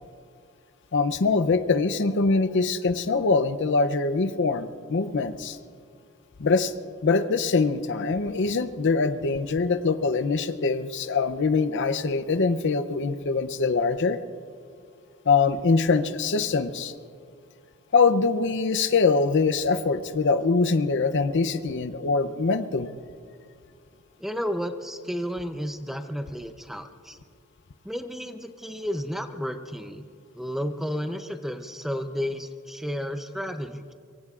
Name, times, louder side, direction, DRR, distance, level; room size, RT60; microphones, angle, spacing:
voice 1, 0.9-5.6 6.4-6.7 7.0-14.2 15.3-16.9 17.9-22.9, left 4 dB, 55° left, 11 dB, 0.6 m, -23 dB
voice 2, 24.2-27.2 27.8-30.0 30.3-33.9, equal, ahead, 7 dB, 0.6 m, -32 dB
24.5 x 23.5 x 2.5 m, 2.2 s
head